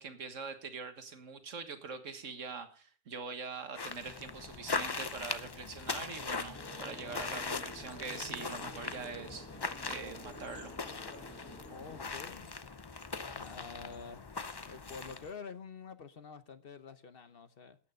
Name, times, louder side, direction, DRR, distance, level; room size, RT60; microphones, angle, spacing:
voice 1, 0.0-9.5 9.8-10.8, right 5 dB, 70° right, 1.8 m, -43 dB
sound 1, 3.7-15.3, left 4 dB, 30° left, 0.4 m, -40 dB
sound 2, 6.5-12.0, equal, 10° left, 1.6 m, -51 dB
voice 2, 11.7-12.6 13.3-14.2 14.6-17.8, left 5 dB, 50° left, 1.0 m, -48 dB
13.0 x 9.3 x 5.3 m
omnidirectional pair, 1.3 m